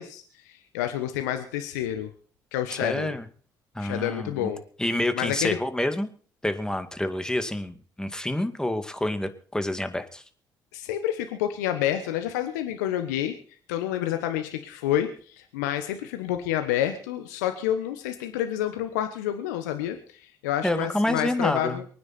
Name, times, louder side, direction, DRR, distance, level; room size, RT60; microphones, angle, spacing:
voice 1, 0.0-2.1 2.5-3.1 3.8-4.6 5.1-5.6 10.7-13.4 13.7-21.8, left 11 dB, 80° left, 7 dB, 1.2 m, -29 dB
voice 2, 2.7-3.3 3.7-4.5 4.8-6.1 6.4-10.2 20.6-21.8, left 1 dB, 5° left, 9 dB, 2.2 m, -28 dB
24.0 x 9.7 x 4.3 m, 0.43 s
hypercardioid pair, 45°, 9 cm